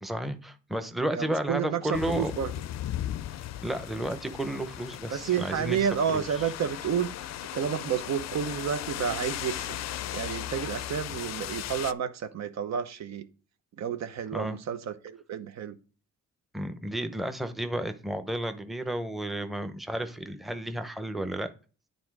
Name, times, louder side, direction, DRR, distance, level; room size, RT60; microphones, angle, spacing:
voice 1, 0.0-2.3 3.6-6.2 14.3-14.6 16.5-21.5, right 1 dB, ahead, 0.8 m, -32 dB
voice 2, 1.1-2.5 5.1-9.7 10.1-13.3 13.8-15.8, right 8 dB, 60° right, 0.9 m, -30 dB
sound 1, 1.9-11.9, left 12 dB, 60° left, 0.5 m, -37 dB
9.4 x 3.9 x 4.7 m
cardioid pair, 90°, 30 cm